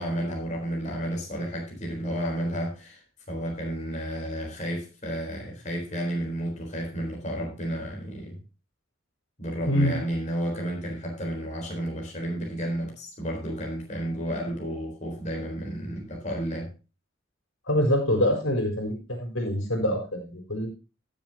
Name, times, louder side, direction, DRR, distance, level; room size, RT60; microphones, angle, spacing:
voice 1, 0.0-3.0 3.3-8.4 9.4-16.7, right 1 dB, 35° left, 0 dB, 3.9 m, -32 dB
voice 2, 9.7-10.0 17.7-20.7, equal, 75° left, 2 dB, 4.6 m, -25 dB
19.0 x 7.4 x 2.8 m, 0.31 s
head